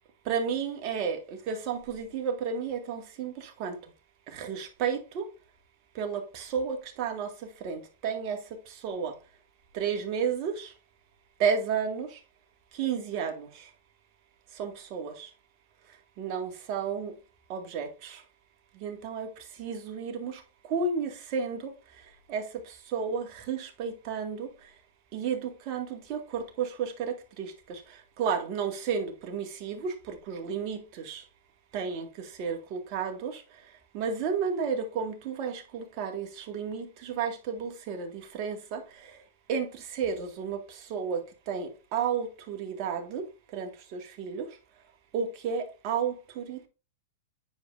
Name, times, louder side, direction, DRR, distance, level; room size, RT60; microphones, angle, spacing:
voice 1, 0.3-3.8 4.3-5.3 6.0-7.3 7.6-8.4 8.8-9.1 9.7-10.7 11.4-12.1 12.8-13.5 14.6-15.3 16.2-17.1 17.5-18.2 18.8-19.3 19.6-20.4 20.7-21.7 22.3-22.4 22.9-24.5 25.1-27.8 28.2-31.2 31.7-32.1 32.4-33.4 33.9-38.1 38.4-38.8 39.5-39.7 39.9-40.6 40.9-41.2 41.5-43.3 43.5-44.5 45.1-46.7, right 6 dB, 45° right, 2.1 m, -32 dB
10.0 x 5.0 x 2.6 m
hypercardioid pair, 115°, 0 cm